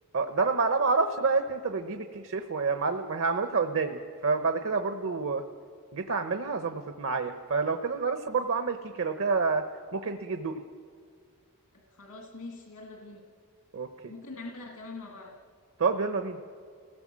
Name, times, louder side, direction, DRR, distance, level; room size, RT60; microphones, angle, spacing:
voice 1, 0.1-5.4 5.9-9.6 9.9-10.6 13.7-13.9 15.8-16.4, right 4 dB, 65° right, 7 dB, 0.9 m, -28 dB
voice 2, 11.9-13.3 14.1-15.4, left 3 dB, 80° left, 1 dB, 2.0 m, -43 dB
29.0 x 17.5 x 7.5 m, 2.1 s
head